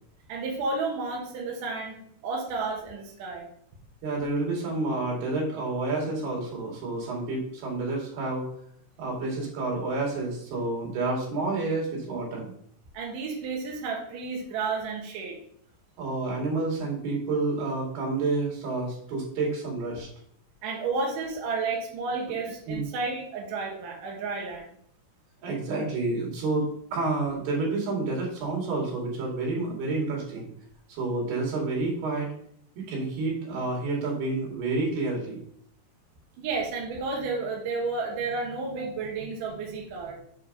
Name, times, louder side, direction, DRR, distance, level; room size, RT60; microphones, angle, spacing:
voice 1, 0.3-2.0 2.2-3.5 12.9-15.4 20.6-24.7 36.4-40.2, right 4 dB, 85° right, 0 dB, 1.8 m, -31 dB
voice 2, 4.0-8.5 9.0-12.5 16.0-20.1 22.7-22.9 25.4-30.5 30.9-32.3 32.8-35.4 38.7-38.8, right 3 dB, 60° right, -2 dB, 3.8 m, -29 dB
7.6 x 4.9 x 5.1 m, 0.66 s
omnidirectional pair, 5.9 m